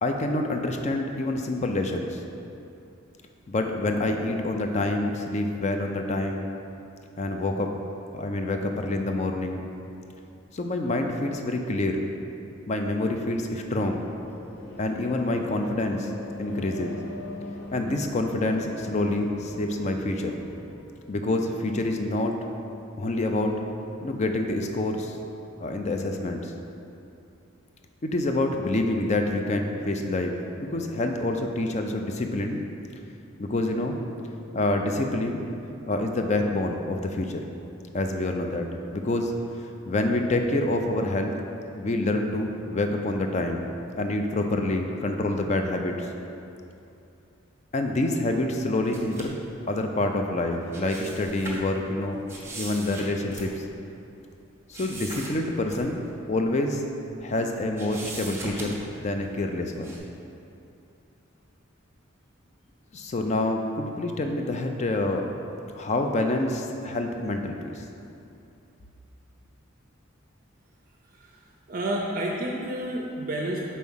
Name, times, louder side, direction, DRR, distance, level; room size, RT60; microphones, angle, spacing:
voice 1, 0.0-2.2 3.5-6.5 7.2-7.7 8.1-9.6 10.5-12.0 12.7-14.0 14.8-16.1 16.4-17.0 17.7-20.3 21.1-22.3 23.0-23.6 24.0-25.2 25.6-26.5 28.0-32.6 33.4-34.0 34.5-35.4 35.8-37.4 37.9-39.3 39.9-41.3 41.7-43.6 43.9-46.1 47.7-49.4 49.7-52.2 52.5-53.6 54.7-56.8 57.2-59.9 62.9-65.3 65.7-67.8, left 2 dB, 35° left, 4 dB, 0.4 m, -27 dB
sound 1, 13.4-20.8, left 2 dB, 55° left, 0.8 m, -40 dB
sound 2, 48.8-49.4 50.5-51.7 52.3-53.9 54.7-55.4 55.7-55.8 56.2-56.3 57.1-57.4 57.8-59.0 59.7-60.0, right 2 dB, 15° right, 0.9 m, -39 dB
voice 2, 71.1-73.6, right 1 dB, 45° right, -2 dB, 0.5 m, -30 dB
4.7 x 4.2 x 5.5 m, 2.7 s
head